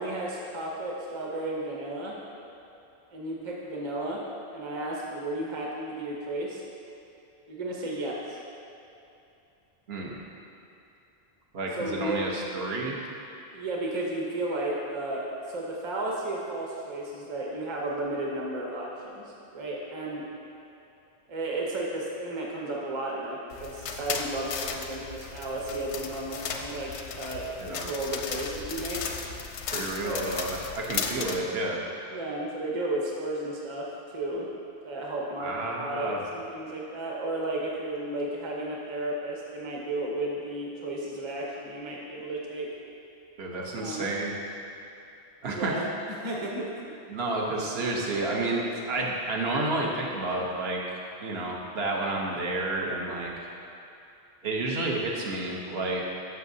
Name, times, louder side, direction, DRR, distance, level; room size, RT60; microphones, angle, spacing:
voice 1, 0.0-2.2 3.1-4.2 4.5-6.6 7.5-8.4 11.8-12.3 13.5-20.2 21.3-29.0 30.0-30.3 32.1-33.9 34.1-34.4 34.8-42.7 43.7-44.1 45.5-46.6, right 1 dB, 30° right, -3 dB, 0.9 m, -33 dB
voice 2, 9.9-10.2 11.5-13.0 27.6-27.9 29.7-30.5 30.7-31.8 35.4-36.2 43.4-44.4 45.4-45.7 47.1-50.8 51.2-53.3 54.4-56.1, right 2 dB, 65° right, -2 dB, 1.2 m, -30 dB
sound 1, 23.5-31.4, left 6 dB, 85° left, 0.9 m, -35 dB
11.5 x 6.2 x 2.7 m, 2.8 s
omnidirectional pair, 1.1 m